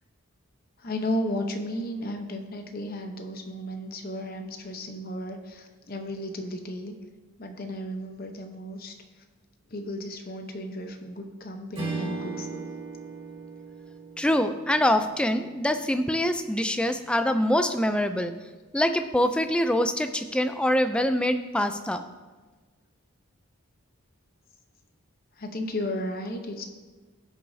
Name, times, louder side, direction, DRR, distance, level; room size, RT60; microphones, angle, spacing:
voice 1, 0.8-6.9 7.4-9.2 9.7-12.7 25.4-26.6, left 1 dB, 40° left, 4 dB, 0.9 m, -34 dB
Strum, 11.7-16.4, right 4 dB, 25° right, 2.6 m, -38 dB
voice 2, 14.2-18.3 18.7-22.0, left 1 dB, 5° left, 8 dB, 0.3 m, -24 dB
16.5 x 6.2 x 2.7 m, 1.3 s
head